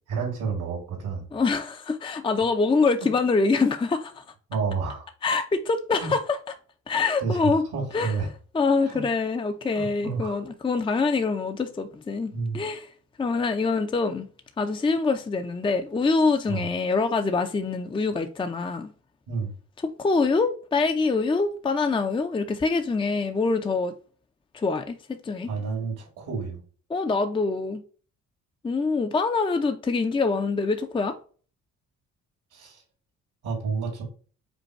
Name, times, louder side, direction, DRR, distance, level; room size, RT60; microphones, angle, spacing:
voice 1, 0.1-1.3 3.0-3.1 4.5-5.1 6.0-6.1 7.2-8.3 8.8-9.1 9.7-10.4 12.3-12.6 16.5-16.7 19.3-19.5 25.5-26.6 32.5-32.8 33.4-34.0, right 5 dB, 80° right, 1.9 m, -30 dB
voice 2, 1.3-4.2 5.2-6.4 6.9-7.6 7.9-8.1 8.5-12.9 13.2-14.3 14.6-18.9 19.8-23.9 24.5-25.5 26.9-27.8 28.6-31.1, left 4 dB, 15° left, 0.5 m, -25 dB
5.2 x 2.2 x 4.4 m
cardioid pair, 90°, 30 cm